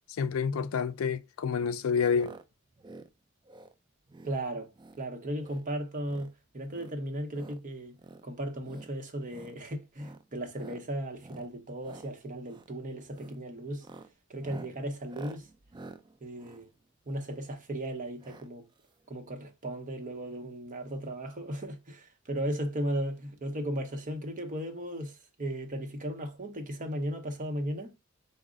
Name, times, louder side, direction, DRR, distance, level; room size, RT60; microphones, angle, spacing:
voice 1, 0.2-2.3, left 6 dB, 70° left, 0.4 m, -28 dB
sound 1, 2.1-2.4 2.7-3.1 3.4-3.7 4.1-4.4 4.7-5.0 5.3-5.7 6.0-6.3 6.7-7.6 8.0-8.2 8.6-8.9 9.3-9.6 9.9-10.2 10.5-10.8 11.2-11.5 11.8-12.1 12.5-12.7 13.1-13.4 13.7-17.4 18.2-18.5 18.8-18.9 19.0-19.1, right 2 dB, 20° right, 0.3 m, -49 dB
voice 2, 4.2-4.7 5.0-8.0 8.2-13.9 14.3-15.5 16.2-16.7 17.1-18.7 19.1-27.9, right 1 dB, 40° right, 0.8 m, -36 dB
4.9 x 2.0 x 3.6 m
head